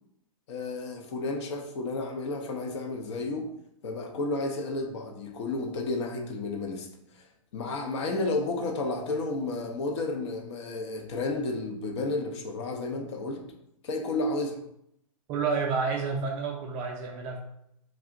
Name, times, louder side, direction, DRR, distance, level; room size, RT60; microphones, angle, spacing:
voice 1, 0.5-3.5 3.8-6.9 7.1-7.3 7.5-13.5 13.8-14.6, left 2 dB, 50° left, 3 dB, 0.6 m, -32 dB
voice 2, 15.3-17.4, right 5 dB, 25° right, 1 dB, 0.3 m, -29 dB
2.4 x 2.1 x 3.6 m, 0.76 s
hypercardioid pair, 130°, 19 cm